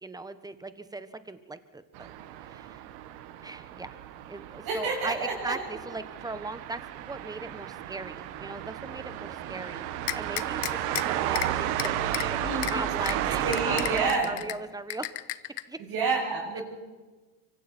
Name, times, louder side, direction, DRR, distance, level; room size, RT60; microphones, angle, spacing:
voice 1, 0.0-2.1 2.4-2.8 3.4-4.0 4.3-9.8 10.1-12.4 12.7-15.1 15.7-15.8 16.6-16.7, right 2 dB, 10° right, 11 dB, 1.3 m, -38 dB
sound 1, 1.9-14.1, right 12 dB, 75° right, 1.8 m, -33 dB
voice 2, 4.6-5.6 12.4-12.8 13.4-14.4 15.8-16.6, right 3 dB, 50° right, -4 dB, 7.6 m, -29 dB
sound 2, 10.1-11.0 11.3-11.5 11.8-12.2 12.6-12.7 13.1-13.2 13.5-14.5 14.9-15.6, left 19 dB, 60° left, 1.0 m, -32 dB
25.0 x 24.5 x 4.5 m, 1.2 s
supercardioid pair, 105°, 48 cm